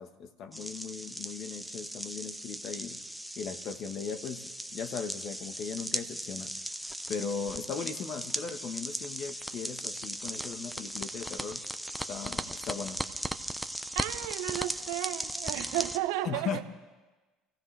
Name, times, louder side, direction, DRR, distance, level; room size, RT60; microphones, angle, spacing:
voice 1, 0.0-3.0 3.4-6.5 7.1-11.6 12.1-13.0 16.2-16.6, left 6 dB, 55° left, 8 dB, 1.4 m, -38 dB
sound 1, 0.5-16.0, equal, ahead, 0.8 m, -38 dB
voice 2, 13.9-16.6, right 15 dB, 80° right, 8 dB, 0.9 m, -33 dB
27.5 x 15.0 x 3.4 m, 1.2 s
supercardioid pair, 90°, 0 cm